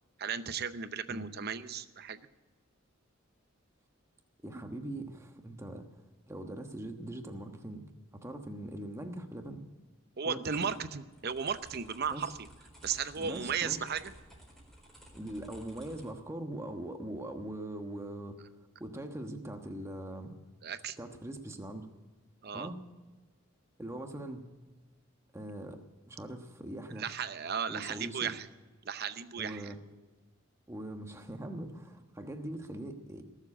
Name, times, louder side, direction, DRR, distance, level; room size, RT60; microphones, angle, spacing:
voice 1, 0.2-2.2 10.2-12.3 12.8-14.1 20.6-21.0 22.4-22.7 27.0-28.5 28.9-29.7, right 7 dB, 50° right, 12 dB, 0.7 m, -35 dB
voice 2, 4.4-7.8 8.1-9.6 10.2-10.7 12.1-12.3 13.2-13.8 15.1-18.4 18.8-20.3 21.0-21.9 22.5-22.8 23.8-24.5 25.3-25.8 26.1-27.2 27.7-28.3 29.3-29.8 30.7-33.2, right 1 dB, 15° right, 5 dB, 1.2 m, -41 dB
sound 1, 10.5-16.1, equal, ahead, 4.3 m, -55 dB
18.5 x 7.4 x 9.9 m, 1.3 s
head